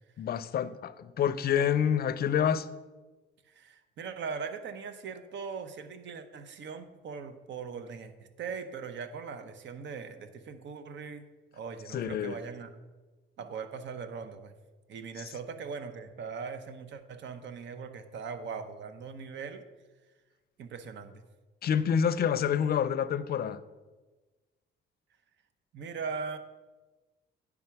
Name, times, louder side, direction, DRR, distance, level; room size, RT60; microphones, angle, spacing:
voice 1, 0.2-2.7 11.9-12.4 21.6-23.6, left 8 dB, 50° left, 14 dB, 0.5 m, -27 dB
voice 2, 3.4-11.2 11.5-12.7 13.4-14.5 14.9-19.6 20.6-21.2 25.7-26.4, right 5 dB, 65° right, 9 dB, 0.8 m, -40 dB
9.6 x 3.6 x 5.8 m, 1.2 s
cardioid pair, 90°, 20 cm